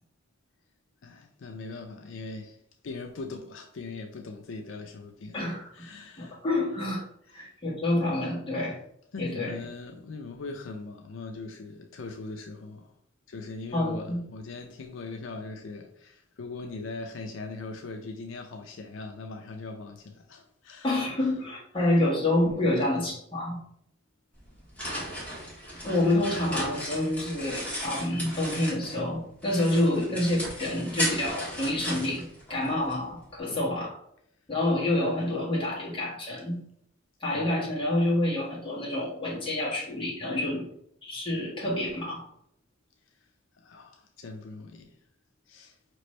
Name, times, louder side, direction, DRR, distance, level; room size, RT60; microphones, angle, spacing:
voice 1, 1.0-6.4 7.3-7.5 9.1-12.9 13.3-21.3 25.5-25.8 33.5-33.7 37.3-37.5 43.6-45.0 45.5-45.8, left 3 dB, 75° left, 0.5 m, -41 dB
voice 2, 5.3-5.9 6.2-7.0 7.3-8.8 9.2-9.5 13.7-14.2 20.8-23.6 25.8-32.2 32.5-33.9 34.5-36.6 37.2-40.7 41.0-42.2, left 1 dB, 25° left, 1.5 m, -28 dB
sound 1, 24.4-29.1 29.4-33.0, equal, 10° left, 1.3 m, -35 dB
5.1 x 3.0 x 3.1 m
head